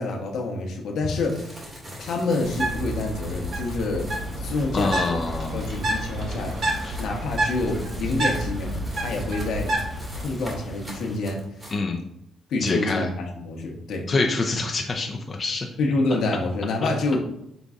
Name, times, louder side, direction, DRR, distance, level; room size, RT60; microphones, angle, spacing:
voice 1, 0.0-1.6 2.0-4.1 4.3-5.1 5.5-6.5 7.0-9.7 10.2-11.4 12.5-14.0 15.8-17.2, left 2 dB, 75° left, 1 dB, 1.0 m, -27 dB
sound 1, 1.0-11.8, equal, 25° right, 1.8 m, -42 dB
Bird, 2.4-10.2, right 1 dB, 60° right, 1.2 m, -29 dB
sound 2, 4.0-11.2, equal, 5° right, 0.9 m, -41 dB
voice 2, 4.7-5.7 6.8-7.0 11.7-12.0 12.6-13.1 14.1-15.7 16.8-16.9, left 3 dB, 35° left, 1 dB, 0.5 m, -26 dB
5.2 x 3.9 x 2.4 m, 0.79 s
cardioid pair, 90°, 0 cm